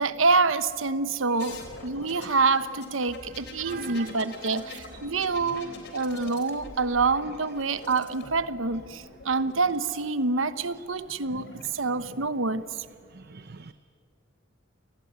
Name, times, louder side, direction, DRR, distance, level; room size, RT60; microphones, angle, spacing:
voice 1, 0.0-12.8, right 4 dB, 75° right, 13 dB, 1.1 m, -27 dB
sound 1, 1.4-9.9 11.1-11.7, left 3 dB, 55° left, 3.9 m, -44 dB
voice 2, 3.7-4.1 13.3-13.7, right 5 dB, 55° right, 11 dB, 0.8 m, -42 dB
29.0 x 19.0 x 9.5 m, 2.2 s
head